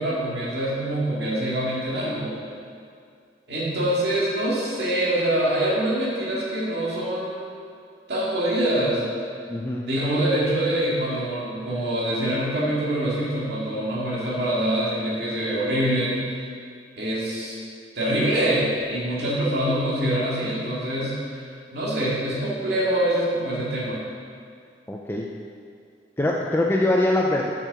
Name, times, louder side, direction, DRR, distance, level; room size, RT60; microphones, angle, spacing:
voice 1, 0.0-2.4 3.5-7.5 8.1-9.0 9.8-16.4 17.0-17.6 18.0-21.5 21.7-24.0, right 1 dB, 65° right, -7 dB, 2.3 m, -25 dB
voice 2, 9.5-9.9 24.9-25.3 26.2-27.5, left 1 dB, 15° left, -2 dB, 0.5 m, -23 dB
7.3 x 6.4 x 6.8 m, 2.3 s
head